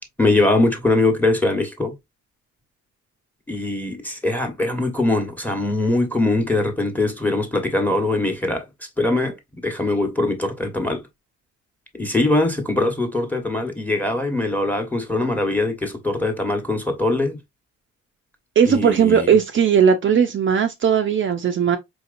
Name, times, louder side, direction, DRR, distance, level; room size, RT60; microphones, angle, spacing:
voice 1, 0.2-1.9 3.5-8.6 9.0-9.3 9.6-11.0 12.0-17.4 18.6-19.3, left 2 dB, 5° left, 1.2 m, -22 dB
voice 2, 18.6-21.8, right 7 dB, 40° right, 0.5 m, -17 dB
4.7 x 2.8 x 2.5 m
cardioid pair, 90°, 30 cm